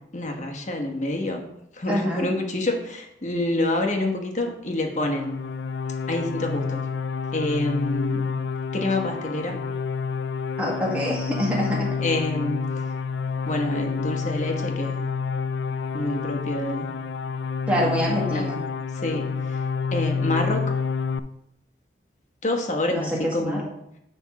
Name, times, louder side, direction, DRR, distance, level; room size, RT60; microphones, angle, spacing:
voice 1, 0.1-1.4 1.7-5.4 6.1-6.8 7.3-8.2 8.7-9.5 12.0-12.8 13.4-15.1 15.9-16.9 18.1-18.4 18.9-19.6 19.9-20.6 22.4-23.6, left 1 dB, 40° left, 2 dB, 1.1 m, -27 dB
voice 2, 1.9-2.3 10.6-11.9 17.7-18.6 22.9-23.6, equal, 5° right, -3 dB, 1.6 m, -25 dB
sound 1, 4.9-21.2, left 5 dB, 75° left, 0.4 m, -29 dB
9.6 x 3.5 x 4.8 m, 0.80 s
head